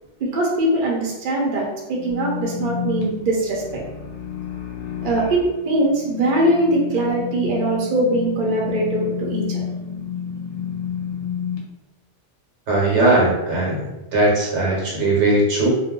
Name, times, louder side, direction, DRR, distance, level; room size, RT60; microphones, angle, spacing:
voice 1, 0.2-3.8 5.0-9.6, right 1 dB, 50° right, -3 dB, 0.8 m, -21 dB
sound 1, 1.9-11.6, left 8 dB, 65° left, 0.9 m, -30 dB
voice 2, 12.7-15.7, right 2 dB, 80° right, -3 dB, 1.2 m, -19 dB
2.4 x 2.2 x 3.6 m, 1.0 s
omnidirectional pair, 1.2 m